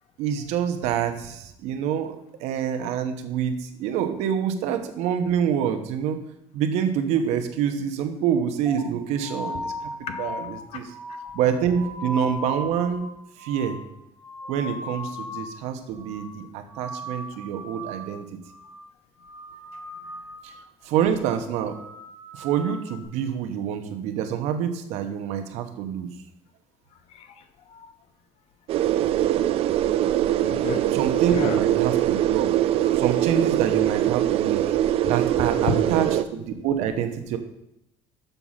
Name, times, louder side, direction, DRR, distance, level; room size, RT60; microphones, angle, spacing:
voice 1, 0.2-6.2 6.5-9.7 10.2-10.9 11.3-13.0 13.4-13.8 14.5-18.3 20.4-20.5 20.8-21.7 22.3-26.1 30.9-32.5 33.0-34.6 35.1-37.4, right 8 dB, 85° right, 7 dB, 1.1 m, -26 dB
sound 1, 8.7-15.6 15.9-16.4 16.7-18.1 18.4-18.9 19.2-20.6 21.0-21.3 21.7-23.0, left 1 dB, 5° right, 2.7 m, -37 dB
voice 2, 27.1-27.9 30.4-30.9 31.3-31.6 32.8-33.0 35.6-36.0, left 5 dB, 65° left, 7 dB, 1.1 m, -31 dB
sound 2, 28.7-36.2, right 12 dB, 60° right, 0.4 m, -22 dB
6.9 x 6.0 x 5.7 m, 0.80 s
cardioid pair, 130°, 11 cm